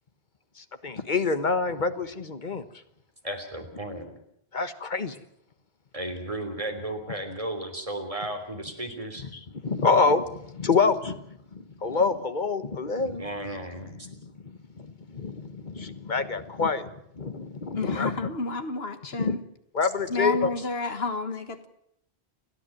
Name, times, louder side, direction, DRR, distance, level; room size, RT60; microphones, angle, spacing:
voice 1, 0.6-2.6 4.5-5.2 9.3-11.2 11.5-13.3 14.0-14.1 14.4-16.9 17.2-18.1 19.2-19.4 19.7-20.5, left 4 dB, 45° left, 11 dB, 1.4 m, -27 dB
voice 2, 3.2-4.1 5.9-9.3 13.0-14.0, right 1 dB, 30° right, 5 dB, 3.4 m, -34 dB
voice 3, 17.7-19.4 20.1-21.7, left 3 dB, 65° left, 9 dB, 1.8 m, -30 dB
29.5 x 10.5 x 9.1 m, 0.75 s
omnidirectional pair, 1.1 m